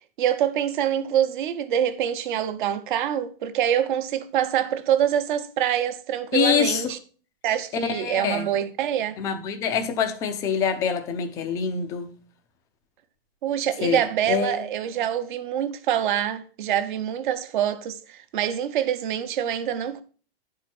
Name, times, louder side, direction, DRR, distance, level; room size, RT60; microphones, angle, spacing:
voice 1, 0.2-7.0 7.4-9.2 13.4-20.0, right 10 dB, 50° right, 1.0 m, -25 dB
voice 2, 6.3-6.9 7.8-8.5 9.2-12.1 13.8-14.0 14.3-14.6, left 7 dB, 10° left, 0.4 m, -25 dB
10.5 x 4.5 x 6.0 m
hypercardioid pair, 165°, 31 cm